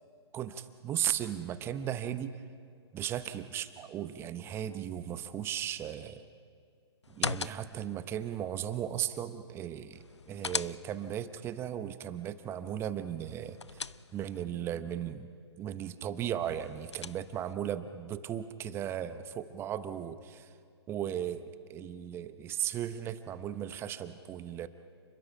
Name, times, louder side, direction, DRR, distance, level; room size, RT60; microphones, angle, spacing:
voice 1, 0.3-2.4 2.9-6.2 7.1-15.3 15.6-20.5 20.9-24.7, right 10 dB, 15° right, 12 dB, 0.9 m, -36 dB
sound 1, 7.0-7.9 9.9-11.2 13.2-14.4 16.4-17.5, left 5 dB, 85° left, 0.5 m, -39 dB
29.5 x 21.5 x 5.6 m, 2.2 s
figure-of-eight pair, 130°, 14 cm